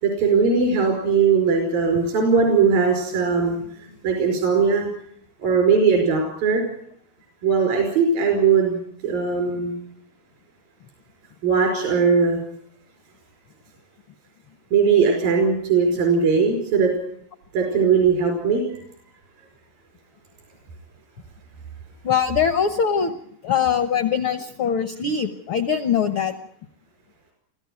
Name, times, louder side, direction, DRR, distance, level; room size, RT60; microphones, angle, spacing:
voice 1, 0.0-4.9 5.4-6.7 7.4-9.7 11.4-12.4 14.7-16.9 17.5-18.6, right 5 dB, 85° right, 2 dB, 6.7 m, -19 dB
voice 2, 22.0-23.1 23.4-26.3, left 7 dB, 75° left, 10 dB, 1.2 m, -22 dB
26.0 x 14.5 x 9.3 m, 0.69 s
omnidirectional pair, 4.0 m